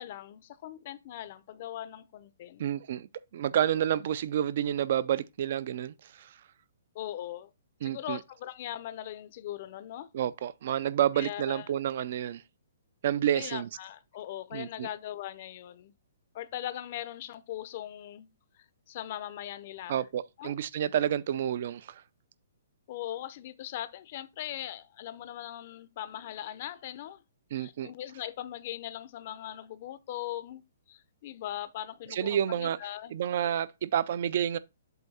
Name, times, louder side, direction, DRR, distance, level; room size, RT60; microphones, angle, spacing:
voice 1, 0.0-2.6 6.9-7.5 7.8-10.1 11.2-11.7 13.3-15.9 16.3-18.3 18.5-20.0 20.4-20.6 22.9-27.2 27.5-30.6 30.9-33.2, left 12 dB, 30° left, 0.5 m, -40 dB
voice 2, 2.6-6.4 7.8-8.2 10.1-12.4 13.0-13.7 14.5-14.9 19.9-22.0 27.5-27.9 32.1-32.8 33.1-34.6, right 10 dB, 40° right, 0.4 m, -29 dB
7.8 x 2.7 x 5.5 m
hypercardioid pair, 175°, 0 cm